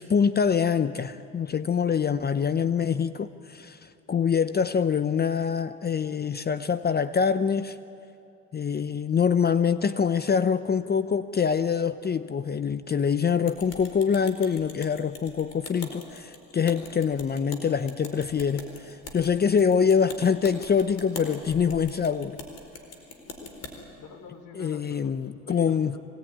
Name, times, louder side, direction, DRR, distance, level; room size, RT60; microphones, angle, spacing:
voice 1, 0.0-3.8 4.1-7.8 8.5-22.4 24.6-25.9, left 6 dB, 30° left, 13 dB, 0.7 m, -25 dB
sound 1, 13.4-23.7, left 3 dB, 45° left, 4.6 m, -42 dB
voice 2, 23.3-23.7 24.0-25.1 25.5-26.0, left 5 dB, 60° left, 7 dB, 3.4 m, -45 dB
24.5 x 19.0 x 9.8 m, 2.6 s
supercardioid pair, 85°, 35 cm